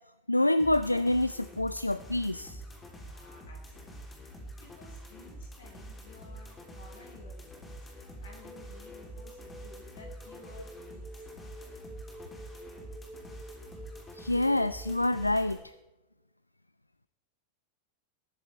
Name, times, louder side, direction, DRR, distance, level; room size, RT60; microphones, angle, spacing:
voice 1, 0.3-2.6 14.1-15.7, left 1 dB, 85° left, 16 dB, 0.3 m, -27 dB
sound 1, 0.6-15.6, right 1 dB, 15° left, 3.2 m, -46 dB
voice 2, 2.9-11.7, left 2 dB, 65° left, -1 dB, 5.7 m, -55 dB
sound 2, 5.8-15.8, equal, 10° right, 1.8 m, -50 dB
19.5 x 10.5 x 3.4 m, 1.0 s
figure-of-eight pair, 90°, 0 cm